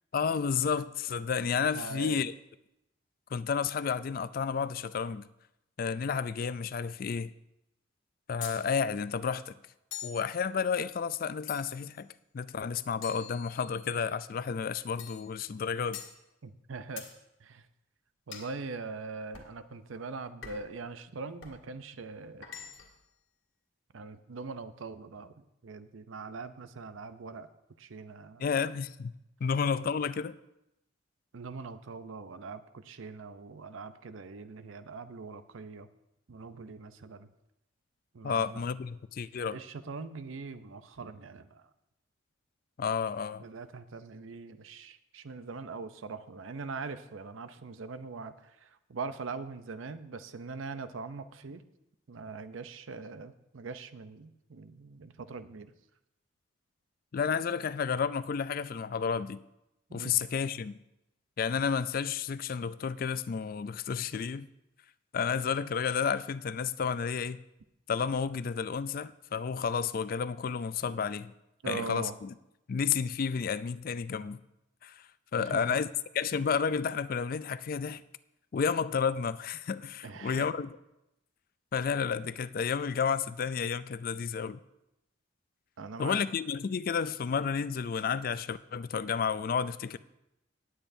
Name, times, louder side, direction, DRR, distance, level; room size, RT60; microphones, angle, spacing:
voice 1, 0.1-2.3 3.3-5.3 5.8-7.3 8.3-9.6 10.0-12.1 12.3-16.0 28.4-29.1 29.4-30.4 38.2-39.6 42.8-43.4 57.1-59.4 59.9-60.8 61.4-64.5 65.1-67.4 67.9-71.3 71.7-72.3 72.7-74.4 74.8-75.9 76.2-78.0 78.5-80.7 81.7-84.6 86.0-90.0, left 6 dB, 45° left, 0.3 m, -31 dB
voice 2, 1.8-2.2 16.4-17.1 17.4-17.7 18.3-22.5 23.9-27.5 27.8-28.4 31.3-35.9 36.3-37.3 38.1-38.6 39.5-41.7 43.4-51.6 52.1-55.7 59.9-60.1 71.6-72.2 75.4-75.8 80.0-80.5 85.8-86.2, right 4 dB, 85° right, 0.6 m, -42 dB
sound 1, 8.4-8.7 9.9-10.3 11.5-11.9 13.0-13.9 15.0-15.3 15.9-16.2 17.0-17.2 18.3-18.6 19.3-19.6 20.4-20.8 21.4-21.6 22.4-23.0, left 9 dB, 80° left, 1.8 m, -44 dB
19.0 x 8.8 x 2.7 m
head